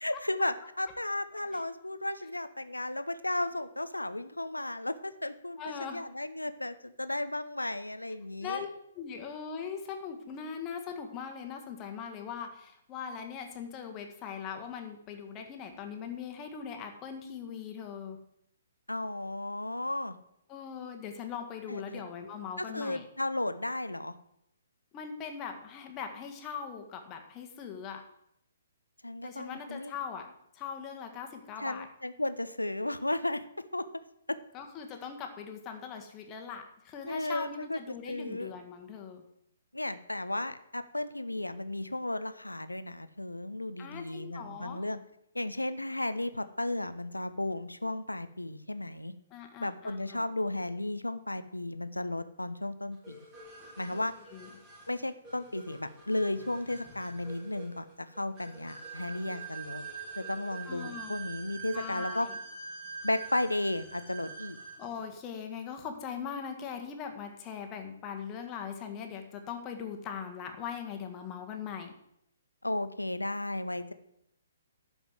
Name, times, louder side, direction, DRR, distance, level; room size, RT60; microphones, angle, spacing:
voice 1, 0.0-8.6 18.9-20.2 21.7-22.0 22.6-24.1 29.0-29.9 31.6-33.4 33.7-33.9 34.3-34.4 37.0-37.8 38.1-38.5 39.7-45.0 45.3-49.1 49.6-53.2 53.8-54.1 54.9-59.8 60.2-62.3 63.0-64.6 72.6-73.9, left 1 dB, 85° left, 12 dB, 0.8 m, -34 dB
voice 2, 5.6-6.0 8.4-8.7 8.9-18.2 20.5-23.0 24.9-28.1 29.2-31.9 34.5-39.2 43.8-44.8 49.3-50.2 53.9-54.0 54.3-54.5 60.7-61.2 61.7-62.4 64.8-71.9, left 7 dB, 25° left, 4 dB, 1.7 m, -40 dB
sound 1, 53.0-65.0, right 5 dB, 15° right, 3.1 m, -45 dB
12.0 x 5.3 x 7.8 m, 0.76 s
figure-of-eight pair, 125°, 0 cm